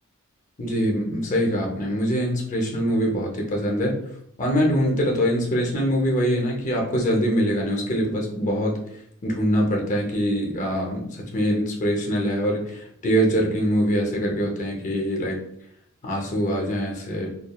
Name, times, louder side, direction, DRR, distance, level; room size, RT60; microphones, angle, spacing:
voice 1, 0.6-4.0 4.4-8.8 9.2-15.4 16.0-17.3, equal, 35° left, 0 dB, 0.6 m, -23 dB
2.9 x 2.4 x 2.2 m, 0.71 s
head